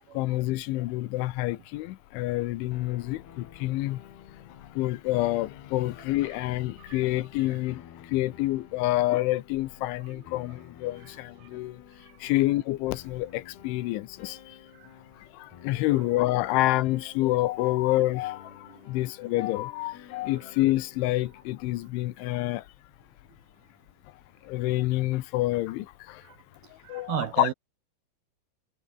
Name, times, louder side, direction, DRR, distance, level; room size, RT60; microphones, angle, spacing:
voice 1, 0.1-4.0 4.7-7.8 8.1-11.8 12.2-14.6 15.3-22.6 24.4-26.2 26.9-27.5, left 17 dB, 90° left, 3.4 m, -28 dB
sound 1, 2.7-22.0, left 9 dB, 60° left, 4.4 m, -51 dB
voice 2, 26.8-27.5, right 13 dB, 75° right, 2.4 m, -35 dB
omnidirectional pair, 5.4 m